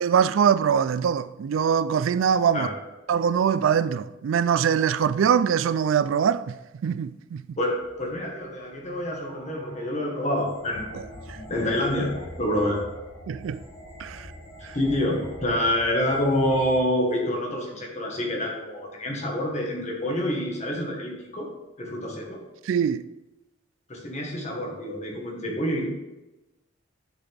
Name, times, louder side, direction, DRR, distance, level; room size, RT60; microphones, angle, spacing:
voice 1, 0.0-2.7 3.1-6.6 6.8-7.6 11.3-11.4 13.3-13.6 14.0-14.3 14.6-14.8 22.7-23.0, right 7 dB, 70° right, 0.3 m, -23 dB
voice 2, 7.6-12.8 14.7-21.5 21.8-22.4 23.9-25.9, left 1 dB, 35° left, 1.5 m, -27 dB
sound 1, 7.8-16.8, equal, 60° left, 1.6 m, -44 dB
10.5 x 5.7 x 3.5 m
head